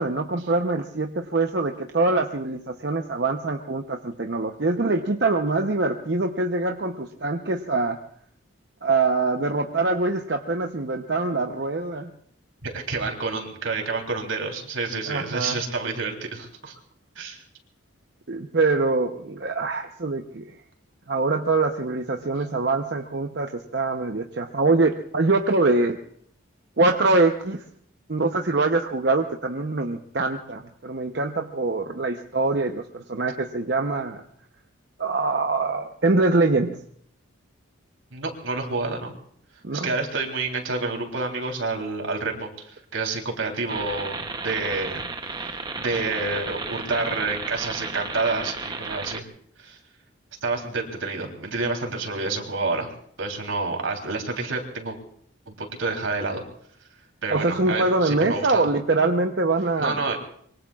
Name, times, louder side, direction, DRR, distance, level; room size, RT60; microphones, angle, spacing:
voice 1, 0.0-8.0 8.8-12.1 15.1-15.6 18.3-20.5 21.1-26.0 26.8-27.6 28.1-34.2 35.0-36.8 39.6-39.9 57.3-60.0, right 3 dB, 55° right, 4 dB, 0.8 m, -24 dB
voice 2, 12.6-16.7 17.1-17.4 38.1-39.1 39.7-45.0 45.8-49.3 49.6-49.8 50.4-52.9 53.2-55.0 55.5-56.4 57.2-58.7 59.8-60.2, right 3 dB, 80° right, 2 dB, 3.4 m, -28 dB
sound 1, 43.7-49.2, right 4 dB, 20° right, 0.8 m, -33 dB
25.0 x 23.5 x 2.4 m, 0.64 s
head